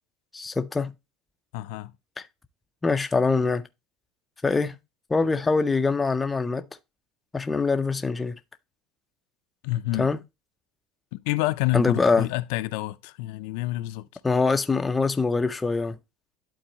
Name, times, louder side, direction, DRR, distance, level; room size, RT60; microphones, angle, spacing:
voice 1, 0.3-0.9 2.8-3.6 4.4-4.8 5.1-6.6 7.3-8.4 10.0-10.2 11.7-12.3 14.2-16.0, left 4 dB, 10° left, 0.4 m, -23 dB
voice 2, 1.5-1.9 9.6-10.1 11.1-14.2, left 18 dB, 75° left, 0.5 m, -28 dB
11.5 x 3.9 x 2.8 m
cardioid pair, 175°, 0 cm